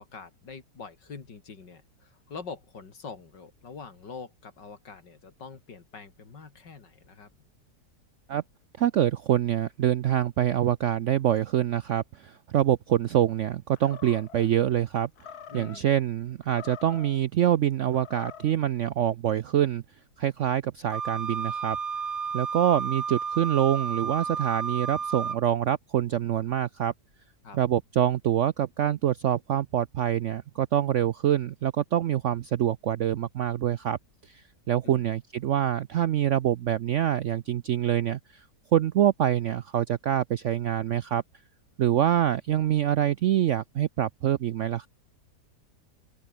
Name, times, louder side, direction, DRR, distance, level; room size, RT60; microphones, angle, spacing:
voice 1, 0.0-7.3 15.5-15.9 27.4-27.6 34.8-35.0, left 5 dB, 85° left, 3.4 m, -44 dB
voice 2, 8.8-15.1 15.5-19.8 20.2-21.8 22.3-26.9 27.5-34.0 34.2-38.4 38.7-41.2 41.8-44.9, right 11 dB, 70° right, 0.7 m, -25 dB
Animal, 13.8-14.5 15.2-15.8 16.4-17.2 17.9-18.6, left 8 dB, 65° left, 1.9 m, -45 dB
Wind instrument woodwind instrument, 20.9-25.4, right 6 dB, 45° right, 1.6 m, -32 dB
open air
omnidirectional pair, 1.9 m